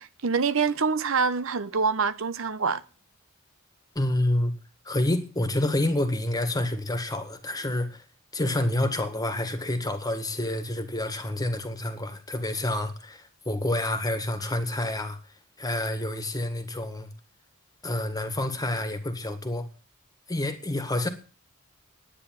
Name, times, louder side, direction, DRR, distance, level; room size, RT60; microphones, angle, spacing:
voice 1, 0.0-2.8, right 5 dB, 65° right, 0.8 m, -25 dB
voice 2, 4.0-4.5 4.9-8.0 8.3-15.2 15.6-17.1 17.8-19.7 20.3-21.1, left 1 dB, 20° left, 1.8 m, -28 dB
10.0 x 9.9 x 9.5 m
head